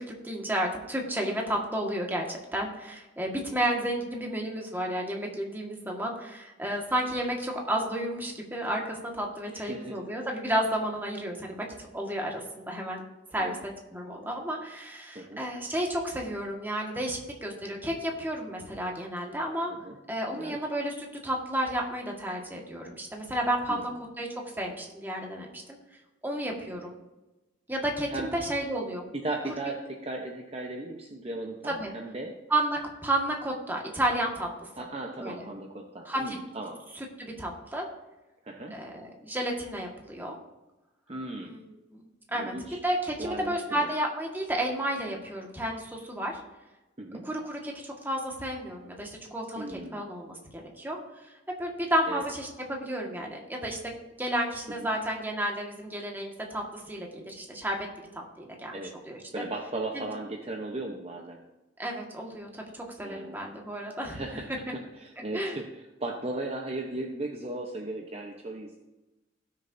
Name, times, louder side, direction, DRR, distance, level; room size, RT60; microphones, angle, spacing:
voice 1, 0.0-11.6 11.9-13.0 13.3-13.6 13.9-19.7 20.1-23.9 24.2-24.3 24.6-25.8 26.2-27.0 27.7-29.0 31.7-31.9 32.5-34.7 35.2-35.5 36.0-36.4 36.9-37.9 38.7-40.4 41.4-41.7 42.3-42.5 42.8-46.4 47.2-51.3 51.6-57.8 58.1-58.7 59.1-59.4 59.9-60.1 61.8-64.2 65.3-65.6, right 1 dB, 10° right, 0 dB, 1.6 m, -32 dB
voice 2, 9.5-9.9 13.4-13.6 15.1-15.4 19.7-20.0 20.3-20.6 23.7-23.9 28.1-28.3 29.1-32.3 34.7-36.8 38.4-38.7 41.1-41.6 42.3-42.8 43.2-43.9 47.0-47.3 49.6-50.1 52.1-52.2 54.8-54.9 58.7-58.9 59.3-61.4 63.0-63.4 64.1-64.5 65.0-68.8, right 2 dB, 30° right, 1 dB, 0.9 m, -36 dB
17.5 x 6.6 x 2.7 m, 1.0 s
head